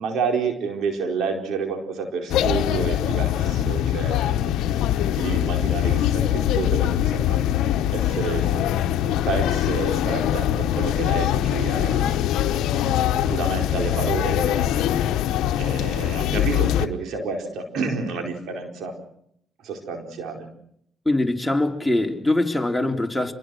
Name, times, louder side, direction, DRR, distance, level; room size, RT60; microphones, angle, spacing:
voice 1, 0.0-7.4 7.9-8.9 9.3-12.2 12.7-19.0 19.6-20.5, right 5 dB, 80° right, 4.5 m, -30 dB
sound 1, 2.3-16.9, left 11 dB, 85° left, 0.9 m, -22 dB
voice 2, 21.1-23.3, left 2 dB, 10° left, 3.6 m, -22 dB
27.5 x 22.0 x 6.4 m
supercardioid pair, 60°, 0 cm